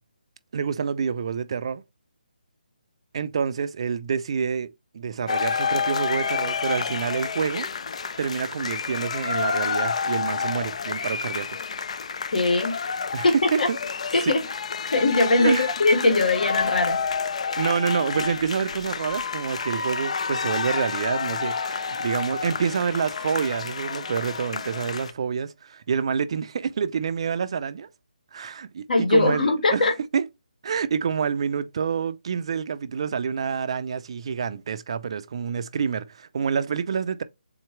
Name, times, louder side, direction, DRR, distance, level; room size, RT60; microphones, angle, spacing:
voice 1, 0.5-1.8 3.1-4.7 4.9-7.7 8.2-11.6 13.1-13.8 14.2-14.3 15.4-15.7 17.6-27.9 28.3-29.9 30.1-30.3 30.6-37.2, right 6 dB, 35° right, 0.4 m, -27 dB
sound 1, 5.3-25.1, left 6 dB, 45° left, 0.4 m, -29 dB
voice 2, 12.3-12.8 13.2-13.7 14.1-14.4 14.9-17.0 28.9-29.9, left 2 dB, 60° left, 1.6 m, -21 dB
3.9 x 2.9 x 4.5 m
hypercardioid pair, 170°, 5 cm